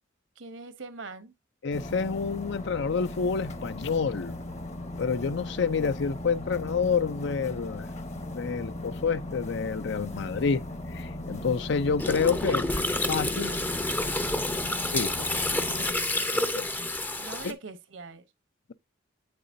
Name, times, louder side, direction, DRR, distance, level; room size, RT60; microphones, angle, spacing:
voice 1, 0.4-1.3 11.3-11.7 12.4-13.6 15.7-16.9 17.2-18.2, right 3 dB, 65° right, 1.0 m, -44 dB
voice 2, 1.6-4.3 5.0-7.9 8.3-10.6 10.9-12.7 13.1-13.5 14.9-15.1 16.5-16.6 17.4-17.5, left 5 dB, 60° left, 0.5 m, -28 dB
sound 1, 1.7-15.9, left 1 dB, 35° left, 0.9 m, -38 dB
Gurgling, 12.0-17.5, left 2 dB, 10° left, 0.6 m, -29 dB
8.6 x 6.8 x 2.6 m
head